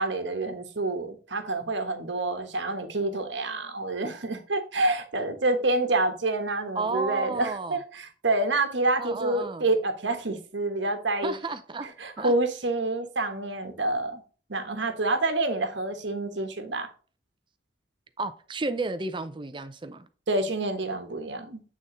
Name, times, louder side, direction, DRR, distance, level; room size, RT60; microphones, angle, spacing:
voice 1, 0.0-11.3 12.0-14.2 14.5-16.9 20.3-21.6, right 2 dB, 75° right, 1.2 m, -28 dB
voice 2, 6.7-7.8 9.0-9.7 11.2-11.9 12.2-12.3 18.2-20.1, right 3 dB, 25° right, 0.5 m, -32 dB
8.5 x 3.7 x 3.8 m
head